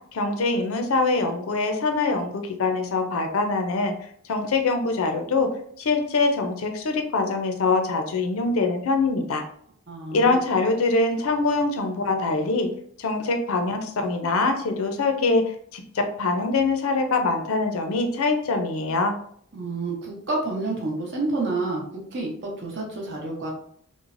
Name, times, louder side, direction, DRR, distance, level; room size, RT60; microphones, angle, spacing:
voice 1, 0.1-3.9 4.3-5.5 5.8-9.4 10.1-12.7 13.0-19.1, left 3 dB, 70° left, 5 dB, 0.5 m, -24 dB
voice 2, 9.9-10.4 19.5-21.8 22.1-23.5, right 2 dB, 55° right, -2 dB, 0.8 m, -29 dB
3.1 x 2.0 x 2.5 m, 0.62 s
head